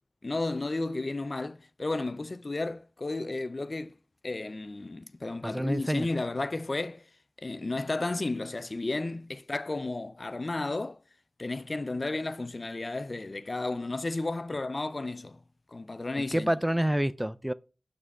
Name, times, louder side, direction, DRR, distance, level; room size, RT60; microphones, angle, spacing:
voice 1, 0.2-3.9 4.2-7.0 7.4-11.0 11.4-15.4 15.7-16.5, left 2 dB, 50° left, 0.4 m, -33 dB
voice 2, 5.4-6.1 16.3-17.5, right 1 dB, 10° right, 0.4 m, -27 dB
6.1 x 5.3 x 4.7 m
wide cardioid pair, 65°, 0 cm